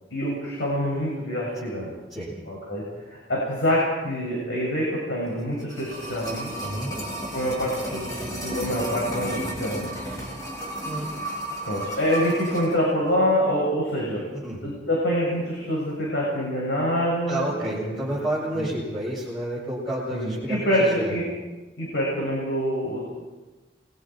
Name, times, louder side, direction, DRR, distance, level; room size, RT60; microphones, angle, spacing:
voice 1, 0.1-1.9 2.5-6.5 7.3-9.9 11.7-14.2 14.6-18.0 18.5-18.7 20.1-21.2 21.8-23.1, equal, 75° left, -4 dB, 7.0 m, -26 dB
sound 1, 5.4-12.8 13.1-13.2, right 1 dB, 20° left, 7.7 m, -33 dB
voice 2, 6.6-6.9 10.8-11.1 14.3-14.6 17.3-21.2, right 1 dB, ahead, -9 dB, 7.8 m, -30 dB
28.5 x 23.0 x 4.6 m, 1.2 s
head